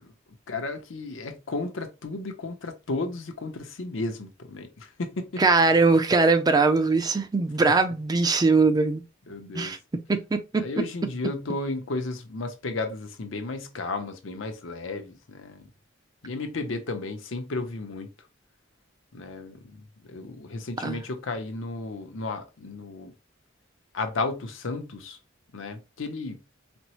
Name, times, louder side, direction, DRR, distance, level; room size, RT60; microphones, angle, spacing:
voice 1, 0.5-5.4 9.3-9.7 10.6-15.7 16.2-18.1 19.1-23.1 23.9-25.2 25.5-26.4, left 3 dB, 85° left, 0.7 m, -33 dB
voice 2, 5.4-9.0 9.5-9.8 10.1-10.7 20.8-21.0, right 3 dB, 20° right, 0.4 m, -21 dB
4.3 x 2.0 x 2.8 m
head